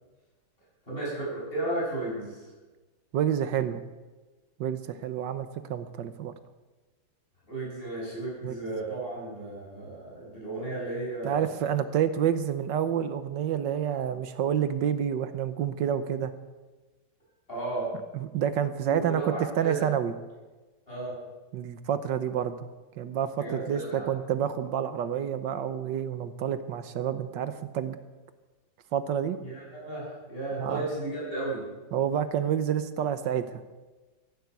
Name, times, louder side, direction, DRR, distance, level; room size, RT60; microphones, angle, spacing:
voice 1, 0.9-2.5 7.5-11.5 17.5-17.9 18.8-19.9 20.9-21.2 23.4-24.1 29.4-31.7, right 2 dB, 30° left, -5 dB, 7.8 m, -34 dB
voice 2, 3.1-3.8 4.6-6.3 8.4-8.5 11.2-16.3 18.2-20.1 21.5-22.6 23.0-28.0 28.9-29.4 30.6-30.8 31.9-33.6, right 9 dB, 80° right, 11 dB, 1.5 m, -28 dB
14.5 x 12.0 x 8.3 m, 1.2 s
omnidirectional pair, 2.0 m